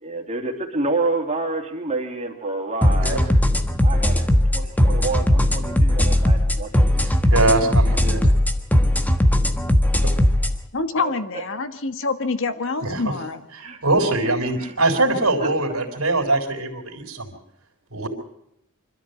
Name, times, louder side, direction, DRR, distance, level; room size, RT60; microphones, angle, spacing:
voice 1, 0.0-3.2 3.8-4.2 4.5-7.1 11.0-11.1 13.6-13.8 14.6-14.7 15.4-15.5, right 3 dB, 30° right, 1 dB, 3.1 m, -28 dB
sound 1, 2.8-10.6, left 1 dB, 10° left, 1.3 m, -18 dB
voice 2, 7.0-8.3 10.0-10.1 12.8-13.0 13.6-17.4 17.9-18.1, right 2 dB, 75° right, 4 dB, 3.8 m, -22 dB
voice 3, 10.7-13.5, left 3 dB, 60° left, 9 dB, 1.5 m, -26 dB
25.5 x 13.5 x 8.0 m, 0.81 s
head